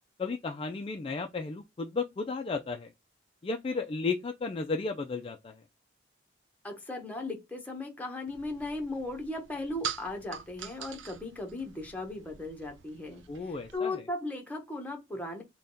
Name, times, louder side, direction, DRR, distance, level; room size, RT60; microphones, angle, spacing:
voice 1, 0.2-2.9 3.4-5.6 13.3-14.0, left 4 dB, 30° left, 0.3 m, -34 dB
voice 2, 6.6-15.4, left 2 dB, 10° left, 0.9 m, -37 dB
sound 1, 8.3-13.8, right 7 dB, 90° right, 0.5 m, -44 dB
3.4 x 2.2 x 3.9 m
head